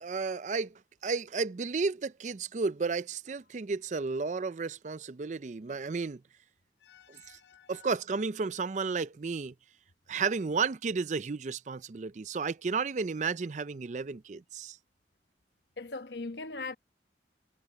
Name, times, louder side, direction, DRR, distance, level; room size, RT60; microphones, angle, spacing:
voice 1, 0.0-6.2 7.1-7.4 7.7-9.5 10.1-14.8, right 4 dB, 40° right, 0.4 m, -33 dB
voice 2, 6.8-7.9 15.8-16.8, left 3 dB, 70° left, 1.0 m, -41 dB
head